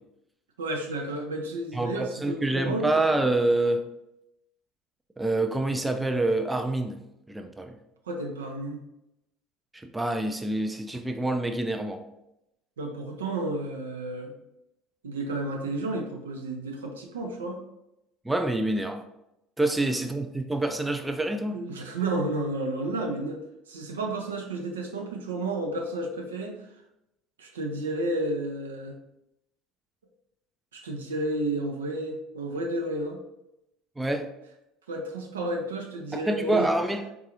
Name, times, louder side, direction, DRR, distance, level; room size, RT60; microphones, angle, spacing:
voice 1, 0.6-2.9 8.1-8.8 12.8-14.3 15.0-17.6 21.5-23.4 23.7-26.6 27.4-28.9 30.7-33.2 34.9-36.7, right 2 dB, 80° right, 2 dB, 0.5 m, -31 dB
voice 2, 1.7-3.8 5.2-7.0 7.3-7.8 9.7-12.1 18.2-19.0 19.6-21.6 34.0-34.3 36.1-37.1, right 2 dB, 10° right, 6 dB, 0.3 m, -27 dB
3.8 x 2.3 x 2.9 m, 0.85 s
figure-of-eight pair, 65°, 0 cm